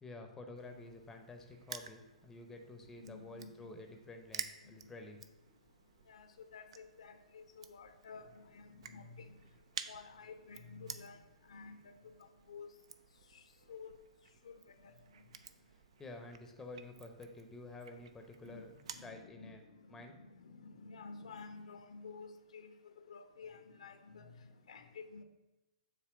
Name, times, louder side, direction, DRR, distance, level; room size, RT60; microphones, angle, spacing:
voice 1, 0.0-5.2 15.7-20.2, left 2 dB, 10° left, 4 dB, 0.8 m, -50 dB
Crushing, 0.6-19.1, right 7 dB, 55° right, 0.5 m, -52 dB
voice 2, 2.8-3.8 4.6-4.9 6.1-9.4 9.9-12.7 13.3-14.0 14.4-15.2 18.4-25.2, left 4 dB, 60° left, 8 dB, 0.7 m, -52 dB
7.5 x 3.3 x 5.8 m, 0.99 s
figure-of-eight pair, 115°, 4 cm